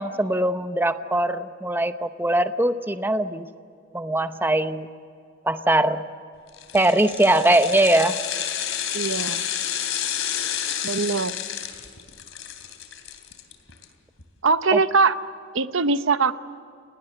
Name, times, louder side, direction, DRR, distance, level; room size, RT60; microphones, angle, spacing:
voice 1, 0.0-3.5 3.9-4.9 5.4-6.1 6.7-8.2 14.7-14.8, right 1 dB, 10° right, 9 dB, 0.8 m, -21 dB
sound 1, 6.5-13.8 14.2-14.3, left 10 dB, 75° left, 3.1 m, -30 dB
voice 2, 8.9-9.4 10.8-11.3 14.4-15.1 15.5-16.3, right 4 dB, 70° right, 12 dB, 0.9 m, -21 dB
29.5 x 19.0 x 7.9 m, 2.4 s
head